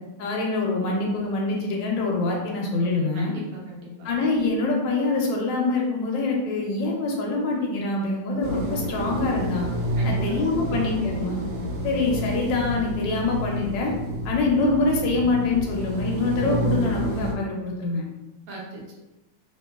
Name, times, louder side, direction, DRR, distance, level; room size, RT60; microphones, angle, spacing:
voice 1, 0.2-3.3 4.0-9.7 10.0-11.4 11.8-13.9 14.2-18.0, left 3 dB, 75° left, -1 dB, 1.1 m, -25 dB
voice 2, 3.1-4.1 10.0-10.2 10.5-10.7 18.5-18.9, right 2 dB, 60° right, -3 dB, 0.9 m, -39 dB
sound 1, 8.4-17.3, right 1 dB, 90° right, 1.5 m, -29 dB
2.9 x 2.9 x 2.2 m, 1.0 s
omnidirectional pair, 2.3 m